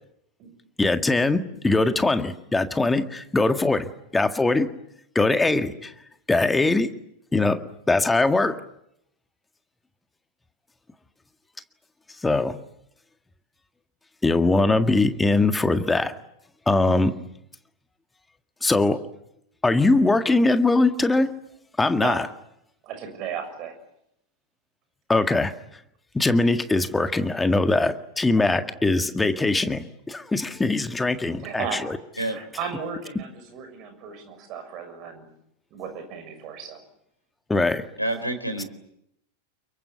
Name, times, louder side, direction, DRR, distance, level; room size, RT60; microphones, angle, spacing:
voice 1, 0.8-4.7 5.2-5.9 6.3-6.9 7.3-7.6 7.9-8.6 12.2-12.6 14.2-16.1 16.7-17.1 18.6-19.0 19.6-21.3 21.8-22.3 25.1-25.5 26.1-32.0 37.5-37.8, left 2 dB, 10° left, 9 dB, 1.7 m, -21 dB
voice 2, 22.8-23.7 28.3-28.5 31.3-31.8 32.3-35.2 35.7-36.8, right 7 dB, 40° right, 8 dB, 6.6 m, -35 dB
voice 3, 38.0-38.6, right 1 dB, 90° left, 8 dB, 4.0 m, -28 dB
29.0 x 23.5 x 8.3 m, 0.77 s
figure-of-eight pair, 90°, 0 cm